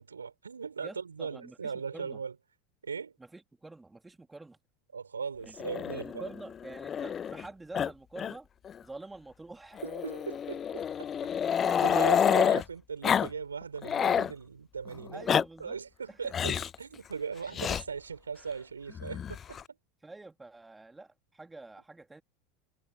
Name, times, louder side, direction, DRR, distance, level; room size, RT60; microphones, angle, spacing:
voice 1, 0.0-2.4 2.8-3.2 4.9-6.3 9.8-15.3 15.6-19.6, right 6 dB, 80° right, 5.6 m, -39 dB
voice 2, 0.8-2.2 3.2-4.6 5.4-5.5 5.9-8.5 8.8-9.8 15.1-15.8 16.1-16.3 20.0-22.2, right 2 dB, 10° right, 3.6 m, -47 dB
Growling, 5.6-7.5 7.7-8.3 8.7-8.8 9.8-12.6 13.0-13.3 13.6-14.3 15.0-15.4 16.3-16.8 17.5-17.8 19.0-19.6, left 8 dB, 30° left, 0.4 m, -28 dB
figure-of-eight pair, 75°, 0 cm